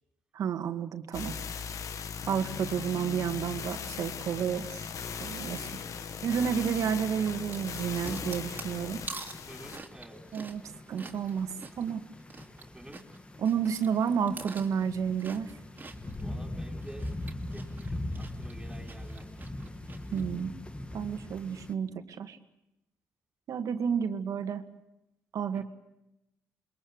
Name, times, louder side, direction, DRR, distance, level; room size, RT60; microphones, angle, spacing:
voice 1, 0.3-1.3 2.3-4.9 5.2-5.7 6.2-9.1 10.3-10.6 10.9-11.5 11.8-12.0 13.4-15.5 20.1-20.5 20.9-22.4 23.5-24.6 25.3-25.6, right 7 dB, 65° right, 8 dB, 2.1 m, -31 dB
sound 1, 1.1-9.8, left 7 dB, 60° left, 1.4 m, -39 dB
sound 2, 4.3-21.7, left 1 dB, 20° left, 1.9 m, -42 dB
voice 2, 5.6-5.9 9.5-10.2 12.7-13.1 16.2-17.1 17.5-19.3 25.5-25.6, right 1 dB, 10° right, 3 dB, 5.8 m, -50 dB
sound 3, 7.1-12.6 12.9-16.2 16.7-20.2, right 4 dB, 30° right, 3.2 m, -46 dB
27.5 x 22.0 x 8.0 m, 0.88 s
cardioid pair, 70°, 6 cm